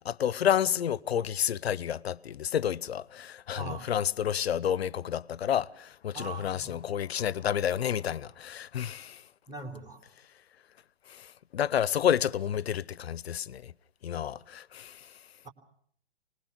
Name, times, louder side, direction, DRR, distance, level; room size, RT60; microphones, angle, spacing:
voice 1, 0.0-9.2 11.1-11.3 11.5-13.7 14.0-15.0, left 9 dB, 70° left, 1.0 m, -30 dB
voice 2, 3.5-4.0 6.1-6.8 9.5-10.0 15.4-15.5, right 3 dB, 10° right, 3.5 m, -41 dB
25.5 x 20.5 x 6.0 m
hypercardioid pair, 125°, 32 cm